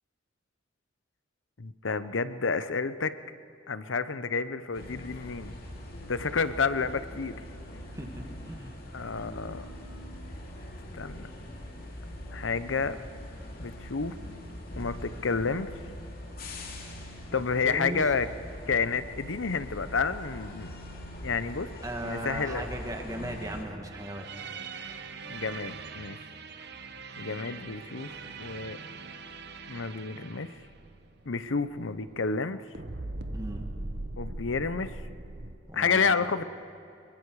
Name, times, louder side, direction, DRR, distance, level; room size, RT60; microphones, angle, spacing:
voice 1, 1.6-3.1 3.7-5.5 6.1-7.3 8.9-9.6 10.9-11.3 12.3-13.0 13.6-14.1 14.7-15.7 17.3-18.3 18.7-20.7 21.2-21.7 22.0-22.6 25.3-26.2 27.2-28.8 29.7-30.5 31.3-32.6 34.2-35.0 35.7-36.4, left 5 dB, 80° left, 13 dB, 0.8 m, -30 dB
sound 1, 4.7-23.6, left 1 dB, 50° left, 2.6 m, -42 dB
voice 2, 7.9-8.8 17.3-18.1 21.8-24.3 33.3-33.7 35.7-36.4, right 1 dB, 20° right, 2 dB, 2.1 m, -37 dB
sound 2, 23.9-32.5 32.7-35.6, right 3 dB, 55° right, 1.0 m, -41 dB
24.0 x 22.5 x 4.8 m, 2.8 s
head